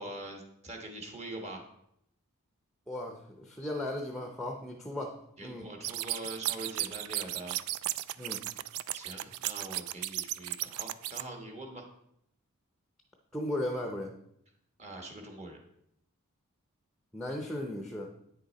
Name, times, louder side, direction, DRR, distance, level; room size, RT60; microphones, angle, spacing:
voice 1, 0.0-1.6 5.4-7.6 8.9-11.9 14.8-15.6, right 1 dB, 30° right, 3 dB, 1.4 m, -43 dB
voice 2, 2.9-5.7 8.2-8.4 13.3-14.1 17.1-18.1, left 1 dB, ahead, 3 dB, 0.7 m, -36 dB
sound 1, 5.8-11.2, right 15 dB, 90° right, 0.3 m, -35 dB
9.0 x 6.6 x 4.2 m, 0.74 s
head